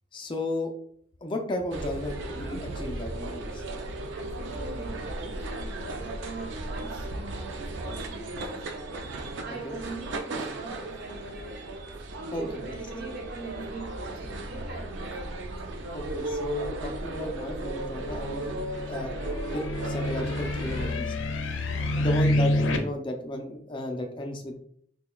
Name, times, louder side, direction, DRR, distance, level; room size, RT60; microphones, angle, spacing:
voice 1, 0.1-0.7 1.2-3.6 9.6-9.8 12.3-12.5 15.9-18.5 18.9-19.1 19.5-21.1 22.0-24.5, left 1 dB, 25° left, 2 dB, 0.4 m, -34 dB
sound 1, 1.7-21.0, right 2 dB, 80° right, 0.5 m, -36 dB
voice 2, 4.1-11.9 12.4-15.5 21.7-22.1, right 2 dB, 55° right, 0 dB, 0.9 m, -42 dB
sound 2, 17.8-22.8, left 1 dB, 90° left, 0.5 m, -28 dB
5.5 x 2.2 x 2.3 m, 0.63 s
head